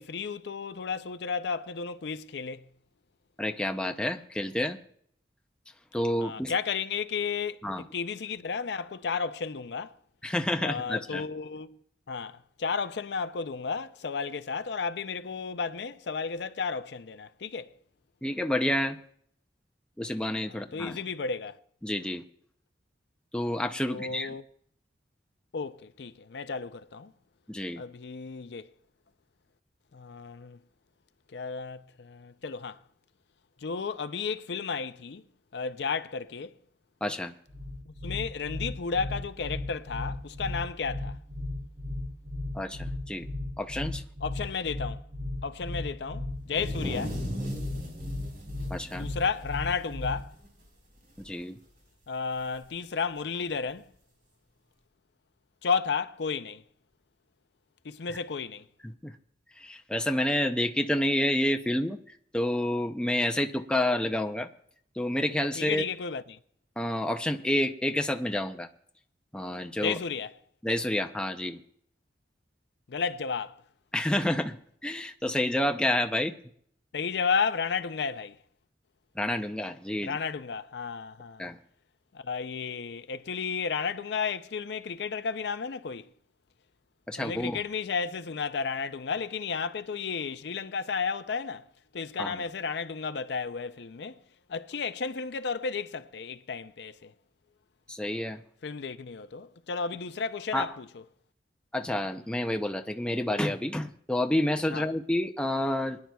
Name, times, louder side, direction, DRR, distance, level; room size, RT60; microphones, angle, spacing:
voice 1, 0.0-2.7 6.2-9.9 10.6-11.8 12.1-17.8 20.5-21.6 23.9-24.4 25.5-27.1 27.8-28.7 29.9-30.6 31.3-32.8 33.6-35.2 35.5-36.6 37.9-41.2 44.2-45.0 45.4-47.2 48.9-50.3 52.1-53.9 55.6-56.6 57.8-58.7 65.6-66.4 69.8-70.3 72.9-73.6 76.9-78.4 80.0-81.4 82.1-86.1 87.2-91.7 91.9-94.2 94.5-97.1 98.6-101.0 104.7-104.8, left 5 dB, 65° left, 0.5 m, -33 dB
voice 2, 3.4-4.8 5.9-6.5 7.6-7.8 10.2-11.2 18.2-19.0 20.0-21.0 21.8-22.2 23.3-24.3 27.5-27.8 37.0-37.3 42.5-43.3 43.6-44.0 48.7-49.1 51.2-51.6 58.1-58.2 58.8-59.1 59.6-62.0 62.3-64.5 65.0-65.8 66.8-68.7 69.3-70.0 70.6-71.6 73.9-74.6 74.8-76.3 79.2-80.2 81.4-81.6 87.1-87.6 92.2-92.4 97.9-98.4 100.5-100.7 101.7-106.0, left 1 dB, 5° left, 0.5 m, -29 dB
sound 1, 37.5-50.4, left 1 dB, 75° right, 3.6 m, -36 dB
sound 2, 46.4-50.1 50.4-50.6 51.0-51.4 52.5-52.6 53.7-53.8, equal, 55° right, 4.0 m, -38 dB
23.5 x 10.5 x 2.3 m
head